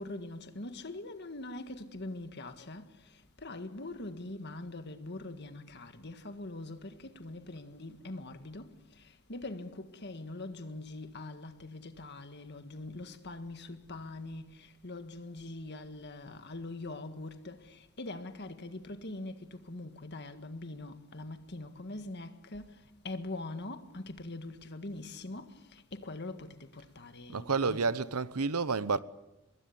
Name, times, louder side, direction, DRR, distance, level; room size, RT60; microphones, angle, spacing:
voice 1, 0.0-2.8 3.4-8.7 9.3-22.8 23.0-27.9, left 2 dB, 50° left, 1.8 m, -43 dB
voice 2, 27.3-29.0, right 4 dB, 85° right, 1.0 m, -30 dB
24.5 x 21.5 x 8.6 m
head